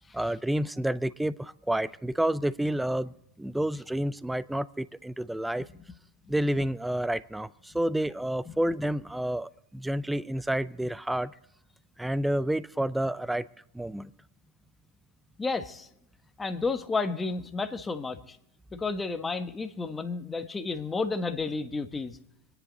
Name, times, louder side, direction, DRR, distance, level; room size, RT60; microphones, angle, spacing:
voice 1, 0.1-5.7 6.3-11.3 12.0-13.5 13.7-14.1, right 1 dB, 5° right, 0.5 m, -29 dB
voice 2, 15.4-15.9 16.4-18.4 18.7-22.2, left 4 dB, 15° left, 1.2 m, -31 dB
26.0 x 10.5 x 4.0 m
hypercardioid pair, 110°, 0 cm